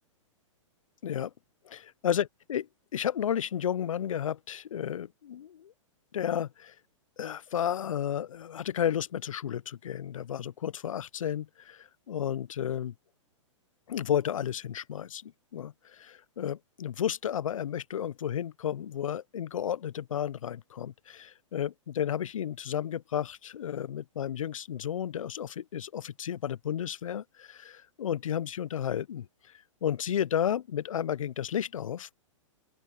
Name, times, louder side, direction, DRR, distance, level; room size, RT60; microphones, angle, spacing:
voice 1, 1.7-5.7 6.1-6.7 7.2-12.9 13.9-29.3 29.8-32.1, left 9 dB, 85° left, 0.5 m, -32 dB
open air
hypercardioid pair, 125°, 17 cm